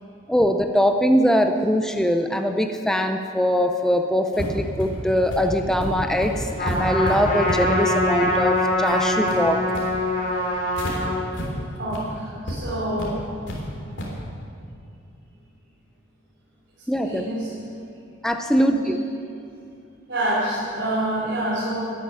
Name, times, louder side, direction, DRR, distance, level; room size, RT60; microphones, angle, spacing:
voice 1, 0.3-9.7 16.9-17.2 18.2-19.0, equal, 5° left, 5 dB, 0.5 m, -22 dB
sound 1, 4.3-10.9 11.3-11.5 11.8-12.0 12.5-12.6 13.0-13.6 14.0-14.2, equal, 60° left, 3.5 m, -31 dB
Trumpet, 6.6-11.2, left 1 dB, 45° left, 2.8 m, -23 dB
voice 2, 11.8-13.2 17.0-17.5 18.5-18.9 20.1-21.8, right 1 dB, 60° right, -9 dB, 3.9 m, -27 dB
13.0 x 11.0 x 8.9 m, 2.5 s
head